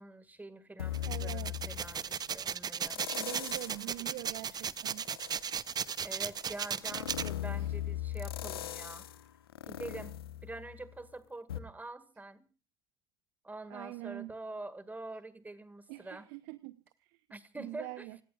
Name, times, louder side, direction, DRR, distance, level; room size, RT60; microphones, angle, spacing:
voice 1, 0.0-3.0 6.0-9.1 9.7-10.1 10.4-12.5 13.4-16.3 17.3-18.1, right 2 dB, 15° right, 14 dB, 2.0 m, -45 dB
sound 1, 0.8-2.2 2.8-3.9 4.3-11.0 11.5-11.6, left 12 dB, 80° left, 1.0 m, -40 dB
sound 2, 0.9-7.3, right 7 dB, 35° right, 0.8 m, -36 dB
voice 2, 1.1-1.6 3.1-5.1 7.6-7.7 13.7-14.3 15.9-17.2 17.6-18.2, right 19 dB, 65° right, 15 dB, 0.8 m, -44 dB
30.0 x 17.5 x 2.5 m, 0.37 s
figure-of-eight pair, 60°, 12 cm